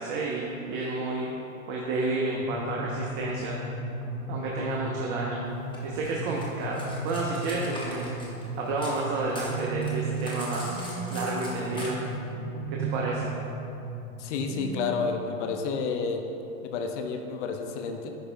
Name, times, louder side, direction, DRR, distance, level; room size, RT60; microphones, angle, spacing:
voice 1, 0.0-1.3 1.7-3.6 4.3-5.4 5.8-8.1 8.6-10.8 11.1-12.0 12.7-13.3, right 3 dB, 35° right, -3 dB, 0.8 m, -30 dB
sound 1, 2.4-15.4, equal, 85° left, 1.1 m, -37 dB
Cutlery silverware, 5.7-9.0 9.3-11.9, left 2 dB, 10° left, 1.0 m, -42 dB
sound 2, 6.8-7.9 9.5-16.0, right 5 dB, 15° right, 0.4 m, -37 dB
voice 2, 14.2-16.2 16.6-18.1, left 5 dB, 55° left, 4 dB, 0.7 m, -30 dB
10.5 x 5.0 x 2.2 m, 2.9 s
hypercardioid pair, 120°, 42 cm